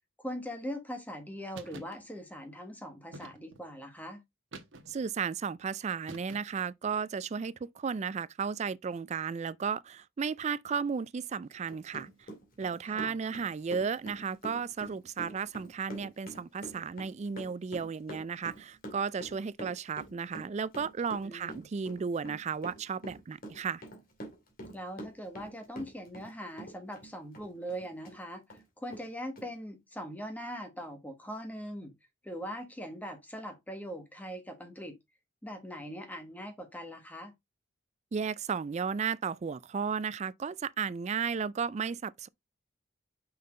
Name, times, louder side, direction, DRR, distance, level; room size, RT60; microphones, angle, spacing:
voice 1, 0.2-4.2 12.9-13.2 21.2-21.7 24.7-31.9 32.2-35.0 35.4-37.3, equal, 10° left, 1.5 m, -41 dB
sound 1, 1.5-2.0 3.1-3.7 4.5-5.1 6.1-6.7, right 2 dB, 70° right, 1.2 m, -48 dB
voice 2, 4.9-12.1 12.6-23.8 38.1-42.3, right 6 dB, 35° right, 0.3 m, -34 dB
Run, 11.7-26.3 26.6-28.2 28.5-28.6 28.9-29.1 29.4-29.5, right 1 dB, 45° left, 2.4 m, -46 dB
5.8 x 5.6 x 3.7 m
head